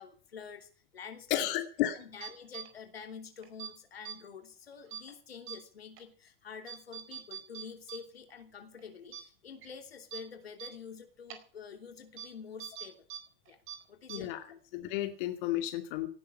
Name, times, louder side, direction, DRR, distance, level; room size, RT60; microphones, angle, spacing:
voice 1, 0.0-1.5 1.9-13.0 13.5-13.6 13.9-14.6, left 6 dB, 85° left, 6 dB, 3.1 m, -48 dB
voice 2, 1.3-2.0 14.1-14.4 14.7-16.1, left 13 dB, 60° left, 7 dB, 2.4 m, -32 dB
sound 1, 2.2-2.7 3.4-3.7 4.0-4.2 4.9-5.1 5.5-5.6 6.0-6.1 6.7-8.0 8.3-8.4 8.8-8.9 9.1-9.2 9.6-9.7 10.1-10.2 10.6-10.7 11.3-11.4 12.2-12.3 12.6-13.2 13.4-13.8 14.1-14.2, right 9 dB, 45° right, 4.5 m, -42 dB
18.0 x 12.0 x 5.6 m, 0.42 s
hypercardioid pair, 95°, 30 cm